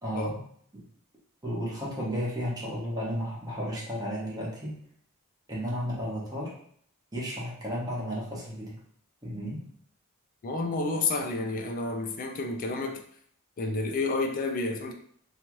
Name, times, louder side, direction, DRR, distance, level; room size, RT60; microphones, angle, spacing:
voice 1, 0.0-0.4 1.4-4.8 5.5-6.5 7.1-8.8 9.2-9.6, equal, 15° right, -6 dB, 0.9 m, -33 dB
voice 2, 10.4-13.0 13.6-14.9, left 3 dB, 40° left, 3 dB, 0.4 m, -30 dB
2.8 x 2.4 x 2.9 m, 0.63 s
head